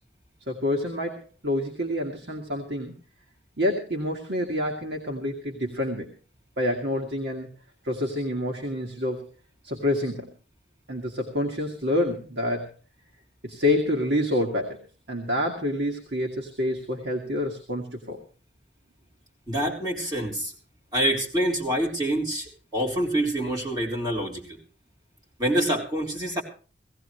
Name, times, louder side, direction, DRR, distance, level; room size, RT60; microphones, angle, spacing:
voice 1, 0.5-3.0 3.6-6.2 6.6-7.5 7.8-9.3 9.6-10.3 10.9-12.7 13.4-14.8 15.1-18.2, left 1 dB, 70° right, 2 dB, 2.1 m, -27 dB
voice 2, 19.5-20.5 20.9-24.6 25.4-26.4, right 1 dB, 25° right, -1 dB, 3.9 m, -26 dB
18.0 x 16.0 x 3.2 m, 0.37 s
head